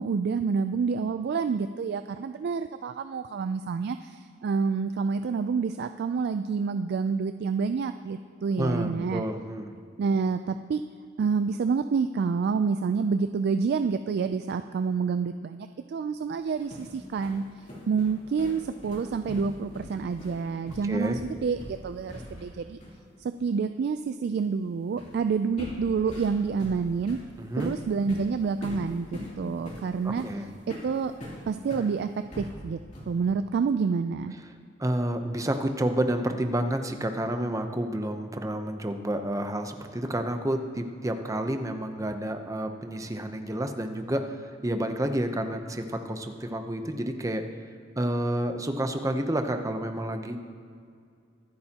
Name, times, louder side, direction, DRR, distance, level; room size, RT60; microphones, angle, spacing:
voice 1, 0.0-9.2 10.0-10.8 11.2-17.5 17.9-22.8 23.2-27.2 27.6-29.1 29.4-30.2 30.7-31.1 31.5-32.8 33.1-34.3, right 5 dB, 55° right, 9 dB, 0.3 m, -28 dB
voice 2, 8.6-9.7 20.8-21.2 27.4-27.7 30.2-30.5 34.8-47.4 48.0-50.4, right 1 dB, 15° right, 6 dB, 0.7 m, -29 dB
sound 1, 16.3-22.6 22.8-23.0 25.0-25.2 25.6-31.9 32.3-33.2, left 1 dB, 40° left, 2.9 m, -41 dB
24.5 x 8.7 x 2.9 m, 2.3 s
head